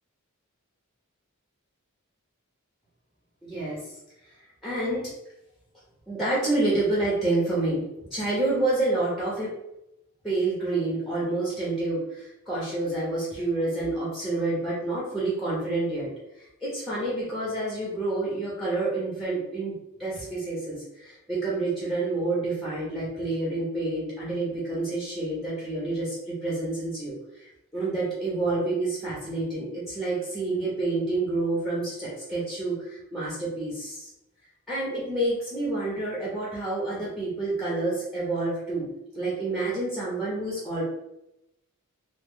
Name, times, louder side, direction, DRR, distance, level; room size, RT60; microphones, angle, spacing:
voice 1, 3.4-3.8 4.6-5.1 6.1-7.8 8.1-9.5 10.2-16.1 16.6-27.1 27.4-34.1 34.7-40.8, right 2 dB, ahead, -6 dB, 0.8 m, -28 dB
2.9 x 2.1 x 3.5 m, 0.87 s
head